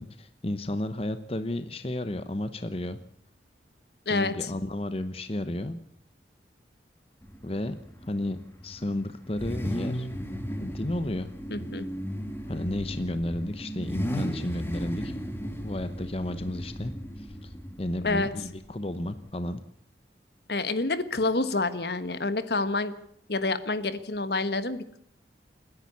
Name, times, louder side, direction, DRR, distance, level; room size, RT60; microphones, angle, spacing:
voice 1, 0.0-3.0 4.1-5.8 7.4-7.7 8.0-8.4 8.6-10.1 10.6-11.3 12.5-15.1 15.6-19.6, left 1 dB, 35° left, 10 dB, 0.9 m, -32 dB
voice 2, 4.1-4.5 11.5-11.9 18.0-18.3 20.5-22.9 23.3-25.0, left 3 dB, 65° left, 12 dB, 1.4 m, -28 dB
Car / Idling / Accelerating revving vroom, 7.2-19.3, equal, 15° left, 2.1 m, -36 dB
29.0 x 10.5 x 8.5 m, 0.65 s
head